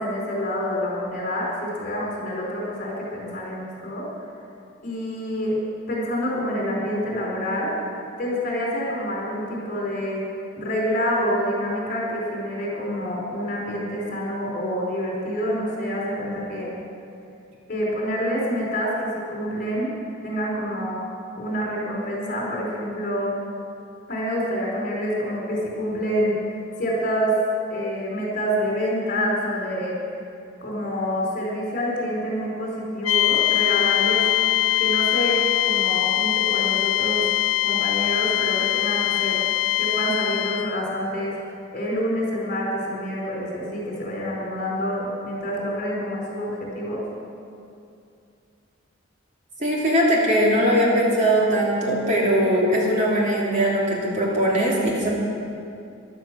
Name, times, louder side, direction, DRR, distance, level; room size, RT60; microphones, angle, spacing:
voice 1, 0.0-4.1 4.8-5.6 5.9-7.9 8.2-10.2 10.6-16.7 17.7-19.9 20.2-21.0 21.4-23.3 24.1-26.4 26.8-27.3 27.7-30.0 30.6-34.2 34.8-37.2 37.6-39.4 39.8-41.3 41.7-47.0, equal, 45° left, -3 dB, 4.6 m, -27 dB
sound 1, 33.0-40.8, left 16 dB, 85° left, 0.6 m, -22 dB
voice 2, 49.6-55.1, equal, 35° right, -4 dB, 2.8 m, -20 dB
15.5 x 11.5 x 6.3 m, 2.6 s
head